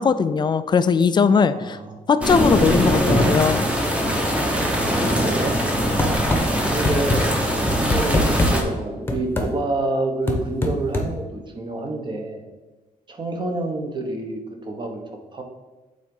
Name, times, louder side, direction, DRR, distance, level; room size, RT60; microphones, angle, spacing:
voice 1, 0.0-1.8 2.1-3.7, left 5 dB, 30° left, 12 dB, 0.3 m, -19 dB
voice 2, 1.5-2.1 4.9-5.6 6.7-8.2 8.5-12.4 13.1-15.0 15.3-15.4, right 2 dB, 30° right, 3 dB, 1.1 m, -28 dB
sound 1, 2.2-8.6, equal, 10° right, 0.9 m, -21 dB
sound 2, 6.0-6.4 6.8-7.2 7.7-8.5 9.1-9.5 10.3-11.1, left 1 dB, 15° left, 1.0 m, -21 dB
8.6 x 3.9 x 3.8 m, 1.2 s
cardioid pair, 135°, 15 cm